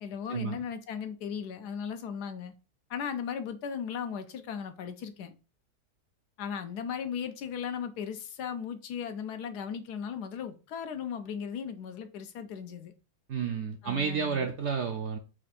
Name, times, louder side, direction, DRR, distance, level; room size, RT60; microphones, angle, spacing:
voice 1, 0.0-2.5 2.9-5.3 6.4-12.9 13.8-14.5, left 7 dB, 85° left, 1.3 m, -37 dB
voice 2, 13.3-15.2, right 6 dB, 65° right, 0.7 m, -31 dB
4.4 x 2.5 x 4.0 m
omnidirectional pair, 1.7 m